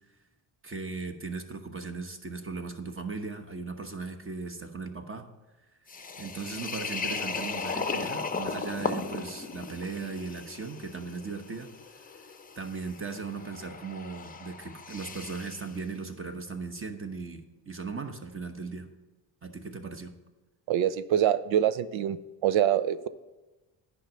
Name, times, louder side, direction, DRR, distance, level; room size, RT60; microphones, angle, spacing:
voice 1, 0.6-5.3 6.2-12.0 12.6-18.9 19.4-20.1, right 4 dB, 25° right, 6 dB, 1.1 m, -38 dB
sound 1, 5.9-15.7, left 4 dB, 20° left, 0.7 m, -37 dB
voice 2, 20.7-22.2 22.4-23.1, right 10 dB, 70° right, 14 dB, 0.6 m, -25 dB
10.0 x 5.3 x 6.8 m, 1.1 s
cardioid pair, 90°, 48 cm